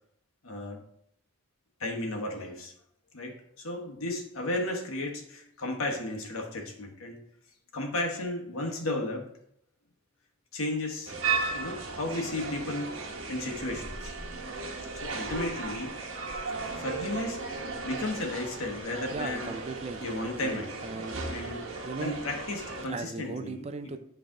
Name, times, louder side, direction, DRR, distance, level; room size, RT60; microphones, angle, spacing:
voice 1, 0.4-0.8 1.8-2.7 3.1-7.2 7.7-9.3 10.5-11.2 11.5-13.0 13.3-14.1 14.9-15.9 16.8-19.6 20.0-20.7 21.3-21.6 22.0-23.7, left 2 dB, 80° left, 1 dB, 1.2 m, -34 dB
sound 1, 11.1-22.9, right 4 dB, 65° right, 1.0 m, -36 dB
voice 2, 19.1-21.2 21.8-22.2 22.9-24.0, right 3 dB, 30° right, 9 dB, 0.4 m, -37 dB
8.6 x 3.3 x 3.7 m, 0.70 s
head